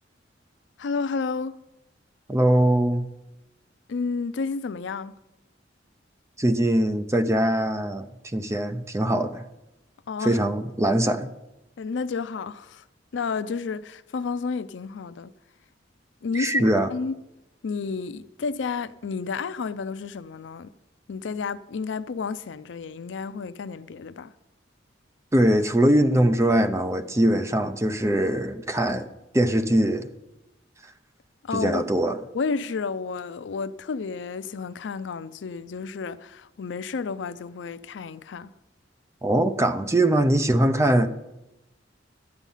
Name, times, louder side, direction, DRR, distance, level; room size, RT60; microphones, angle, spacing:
voice 1, 0.8-1.6 3.9-5.1 10.1-10.4 11.8-12.8 13.1-15.3 16.2-17.2 17.6-20.7 21.1-24.3 31.4-31.9 32.3-38.5, left 5 dB, 70° left, 0.4 m, -31 dB
voice 2, 2.3-3.1 6.4-8.1 8.3-9.4 10.2-11.3 16.3-16.9 25.3-29.1 29.3-30.1 31.5-32.2 39.2-41.1, right 1 dB, 15° right, 0.6 m, -22 dB
11.5 x 8.1 x 5.6 m
head